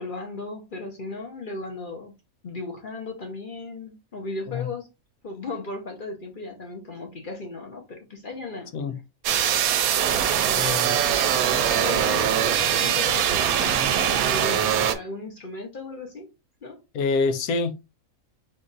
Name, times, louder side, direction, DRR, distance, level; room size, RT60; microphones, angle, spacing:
voice 1, 0.0-2.1 2.4-4.9 5.2-8.7 10.4-10.9 11.7-16.3 16.6-16.8, left 3 dB, 45° left, 0.9 m, -36 dB
sound 1, 9.2-14.9, right 9 dB, 85° right, 1.0 m, -22 dB
voice 2, 10.6-11.0 16.9-17.9, left 4 dB, 85° left, 1.1 m, -26 dB
3.7 x 2.5 x 3.8 m
omnidirectional pair, 1.5 m